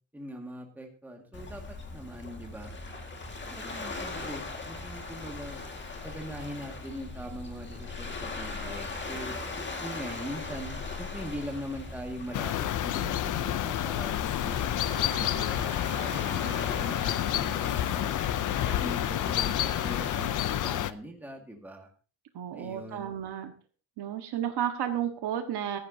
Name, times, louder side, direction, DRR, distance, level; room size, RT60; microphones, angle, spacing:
voice 1, 0.1-1.6 1.9-2.7 3.5-5.6 6.0-9.4 9.8-14.7 15.1-18.2 18.7-21.9 22.5-23.1, equal, 5° right, 1 dB, 1.9 m, -41 dB
Waves surf, 1.3-20.3, left 3 dB, 25° left, 1.9 m, -39 dB
sound 1, 12.3-20.9, left 12 dB, 45° left, 0.6 m, -29 dB
voice 2, 22.3-23.5 24.0-25.8, right 10 dB, 60° right, 6 dB, 1.5 m, -32 dB
15.5 x 14.0 x 2.8 m, 0.37 s
cardioid pair, 170°, 46 cm